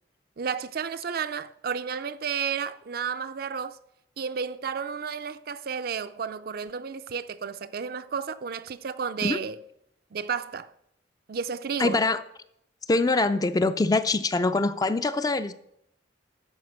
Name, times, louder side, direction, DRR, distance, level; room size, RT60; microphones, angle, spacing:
voice 1, 0.4-3.8 4.2-9.6 10.1-10.7 11.3-12.0, right 6 dB, 55° right, 0.5 m, -32 dB
voice 2, 11.8-12.2 12.9-15.5, left 3 dB, 20° left, 0.4 m, -24 dB
13.0 x 5.0 x 6.4 m
head